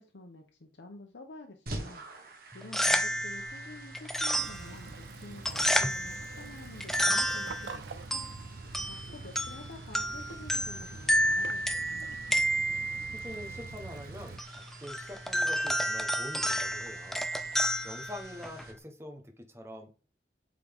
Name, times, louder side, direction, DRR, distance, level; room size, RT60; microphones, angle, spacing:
voice 1, 0.0-2.0 2.5-8.3 8.8-12.1, left 2 dB, 75° left, 2 dB, 0.9 m, -49 dB
sound 1, 1.7-18.7, right 2 dB, 55° right, 1.4 m, -50 dB
sound 2, 2.5-18.8, equal, ahead, 0.4 m, -32 dB
Waves surf / Splash splatter / Trickle dribble, 4.3-14.4, right 4 dB, 70° right, 0.5 m, -46 dB
voice 2, 13.2-17.3 17.8-20.1, left 1 dB, 15° right, 4 dB, 1.0 m, -45 dB
8.2 x 3.9 x 3.6 m, 0.34 s
head